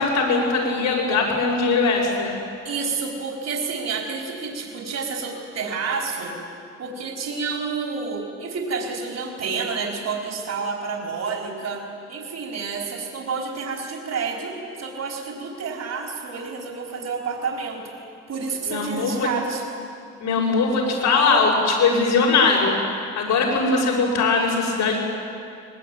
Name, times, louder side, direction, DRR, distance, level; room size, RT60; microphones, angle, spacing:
voice 1, 0.0-2.4 18.7-19.3 20.2-25.0, left 4 dB, 85° left, -4 dB, 6.5 m, -20 dB
voice 2, 2.6-6.4 6.8-17.9 18.3-19.7, right 5 dB, 60° right, 0 dB, 4.6 m, -29 dB
23.5 x 20.5 x 9.4 m, 2.4 s
cardioid pair, 90°, 30 cm